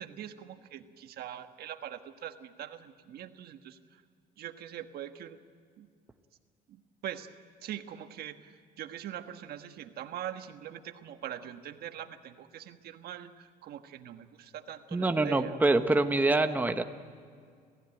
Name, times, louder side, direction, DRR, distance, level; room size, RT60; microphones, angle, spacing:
voice 1, 0.0-3.8 4.4-5.4 5.8-5.9 6.7-7.3 7.6-8.5 8.8-15.6, right 10 dB, 65° right, 8 dB, 1.3 m, -42 dB
voice 2, 14.9-16.8, right 2 dB, 10° right, 7 dB, 1.1 m, -25 dB
28.0 x 15.0 x 9.1 m, 2.1 s
cardioid pair, 110°, 17 cm